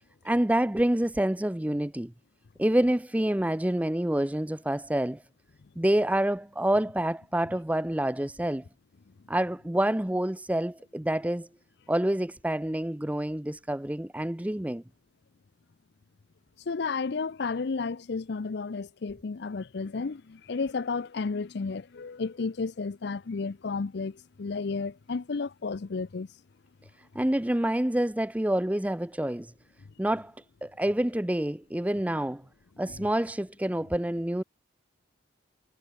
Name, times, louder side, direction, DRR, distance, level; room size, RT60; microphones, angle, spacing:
voice 1, 0.2-2.1 2.6-5.2 5.8-8.6 9.3-11.5 11.9-14.8 27.1-29.5 30.0-30.3 30.6-32.4 32.8-34.4, right 1 dB, 5° right, 0.5 m, -27 dB
voice 2, 16.7-26.3 32.9-33.0, left 4 dB, 55° left, 0.5 m, -32 dB
head